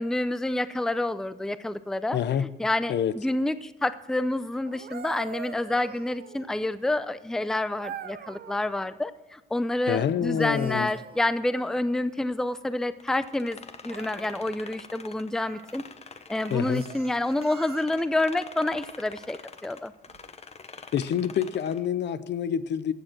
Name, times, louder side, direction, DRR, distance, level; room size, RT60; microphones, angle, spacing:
voice 1, 0.0-2.2 2.6-15.8 16.3-19.9, left 1 dB, 5° left, 14 dB, 0.5 m, -28 dB
voice 2, 2.1-2.5 2.9-3.2 9.8-10.9 16.5-16.8 20.9-22.9, left 9 dB, 60° left, 15 dB, 0.6 m, -27 dB
sound 1, 4.6-6.6 7.8-8.8 10.2-11.8 13.9-14.5 15.3-15.7 16.4-18.2 20.1-20.3, right 8 dB, 50° right, 0.9 m, -44 dB
sound 2, 13.0-17.5 17.8-21.9, left 5 dB, 30° left, 0.9 m, -46 dB
15.0 x 6.7 x 6.0 m, 1.1 s
cardioid pair, 90°, 20 cm